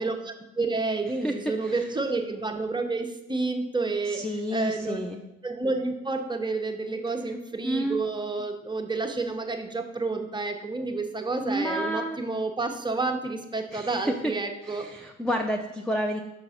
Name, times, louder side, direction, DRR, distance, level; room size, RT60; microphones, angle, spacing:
voice 1, 0.0-4.2 4.5-5.0 5.4-14.9, right 3 dB, 15° right, 4 dB, 0.8 m, -30 dB
voice 2, 4.1-5.2 7.6-8.0 11.4-12.2 13.7-14.3 14.6-16.2, equal, 5° left, 3 dB, 0.5 m, -30 dB
5.7 x 3.9 x 5.6 m, 0.90 s
cardioid pair, 90°, 30 cm